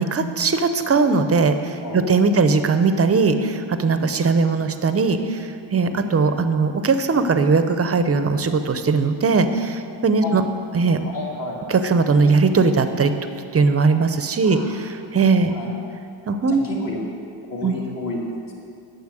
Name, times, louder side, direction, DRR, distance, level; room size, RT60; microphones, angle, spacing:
voice 1, 0.0-10.4 10.7-11.0 11.7-13.1 13.5-15.6 16.3-16.6 17.6-17.8, right 4 dB, 30° right, 9 dB, 0.6 m, -19 dB
voice 2, 11.0-11.6 14.4-14.8 15.5-15.7 16.5-17.0 17.5-18.3, left 2 dB, 45° left, -3 dB, 2.3 m, -31 dB
9.5 x 6.9 x 8.9 m, 2.5 s
wide cardioid pair, 150°, 46 cm